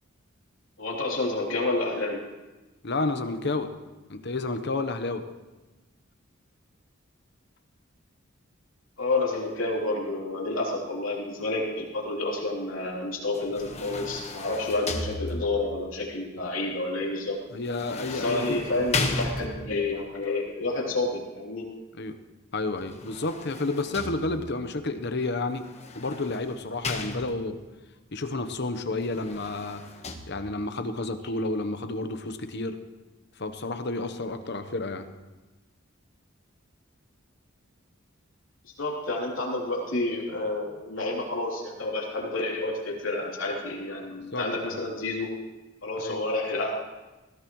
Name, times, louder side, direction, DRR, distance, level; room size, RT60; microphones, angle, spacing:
voice 1, 0.8-2.2 9.0-17.4 18.1-21.6 38.8-45.3 45.8-46.7, left 2 dB, 75° left, -2 dB, 3.3 m, -29 dB
voice 2, 2.8-3.7 4.1-5.2 17.5-18.6 22.0-22.2 22.5-25.7 25.9-27.6 28.1-29.8 30.3-32.8 33.4-35.1 44.3-44.5 46.0-46.2, left 2 dB, 60° left, 9 dB, 1.0 m, -30 dB
sound 1, 13.3-15.8 17.6-19.9 22.8-24.6 25.6-27.6 29.0-30.2, left 3 dB, 35° left, 1.3 m, -35 dB
20.5 x 15.5 x 3.2 m, 1.1 s
head